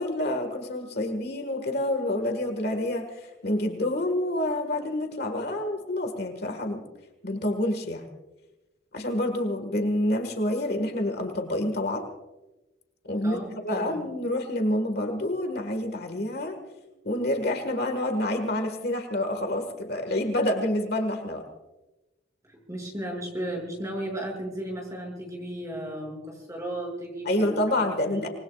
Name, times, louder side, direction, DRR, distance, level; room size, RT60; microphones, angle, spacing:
voice 1, 0.0-6.8 7.2-8.1 8.9-12.1 13.0-16.6 17.0-21.4 27.2-28.3, left 1 dB, 55° left, 6 dB, 1.7 m, -28 dB
voice 2, 13.2-14.1 22.5-28.3, right 1 dB, 15° right, -1 dB, 6.4 m, -35 dB
27.0 x 20.5 x 2.4 m, 1.0 s
head